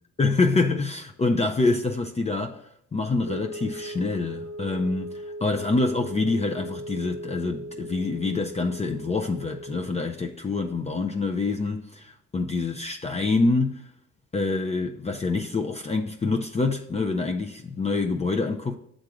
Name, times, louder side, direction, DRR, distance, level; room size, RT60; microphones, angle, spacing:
voice 1, 0.2-2.6 2.9-13.9 14.3-18.7, left 3 dB, 20° left, 0.5 m, -26 dB
sound 1, 3.3-9.8, right 1 dB, 70° left, 0.9 m, -38 dB
7.2 x 3.9 x 4.7 m
cardioid pair, 90°, 30 cm